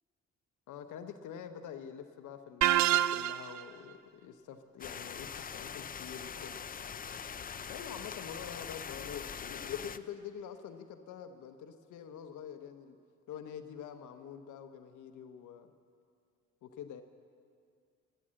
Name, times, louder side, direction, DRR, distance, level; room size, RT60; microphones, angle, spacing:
voice 1, 0.7-6.6 7.7-13.0 13.3-15.7 16.6-17.0, left 8 dB, 80° left, 7 dB, 0.9 m, -46 dB
sound 1, 2.6-3.6, right 12 dB, 65° right, 0.4 m, -27 dB
sound 2, 4.8-10.0, left 7 dB, 30° left, 0.5 m, -43 dB
15.0 x 11.5 x 7.5 m, 2.3 s
cardioid pair, 90°, 30 cm